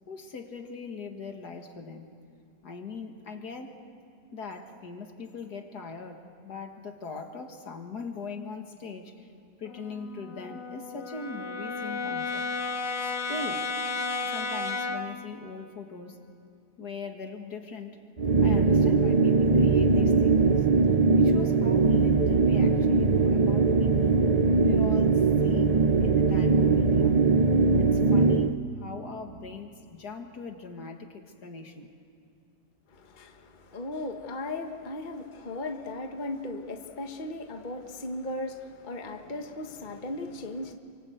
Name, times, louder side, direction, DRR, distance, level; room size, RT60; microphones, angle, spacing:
voice 1, 0.1-2.1 2.6-3.7 4.3-9.3 9.6-12.4 13.3-13.7 14.2-16.2 16.8-18.0 18.4-20.7 21.2-24.2 24.6-25.7 26.0-27.2 27.8-31.9, left 4 dB, 65° left, 5 dB, 2.4 m, -40 dB
Brass instrument, 9.7-15.2, left 3 dB, 80° left, 2.1 m, -33 dB
sound 1, 18.2-28.6, right 4 dB, 75° right, 0.3 m, -21 dB
voice 2, 32.9-40.7, left 2 dB, 30° left, 4 dB, 1.4 m, -37 dB
28.5 x 24.5 x 8.1 m, 2.5 s
omnidirectional pair, 1.9 m